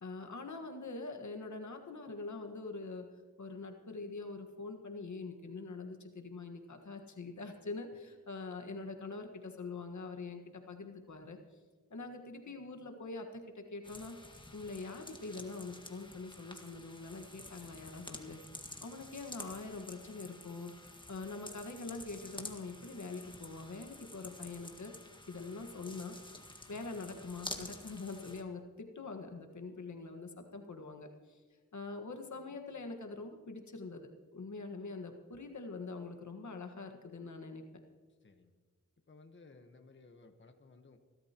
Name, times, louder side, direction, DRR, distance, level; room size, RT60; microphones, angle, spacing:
voice 1, 0.0-3.1 3.4-11.4 11.9-14.2 14.5-18.4 18.8-24.9 25.3-26.2 26.7-31.4 31.7-37.6, left 3 dB, 65° left, 5 dB, 1.6 m, -44 dB
sound 1, 13.8-28.4, left 1 dB, 15° left, 1.7 m, -50 dB
voice 2, 38.2-38.5 39.1-41.0, left 3 dB, 35° left, 5 dB, 1.2 m, -58 dB
25.0 x 12.5 x 3.0 m, 1.5 s
cardioid pair, 50°, 31 cm